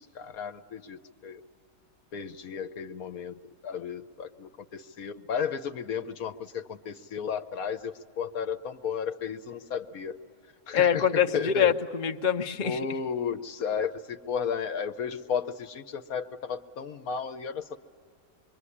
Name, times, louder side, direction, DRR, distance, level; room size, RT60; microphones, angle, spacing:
voice 1, 0.0-1.4 2.1-3.3 3.6-10.2 10.7-11.7 12.6-17.8, left 7 dB, 60° left, 10 dB, 1.3 m, -33 dB
voice 2, 10.7-12.8, left 8 dB, 40° left, 6 dB, 0.7 m, -24 dB
25.5 x 23.0 x 9.9 m, 2.1 s
omnidirectional pair, 1.8 m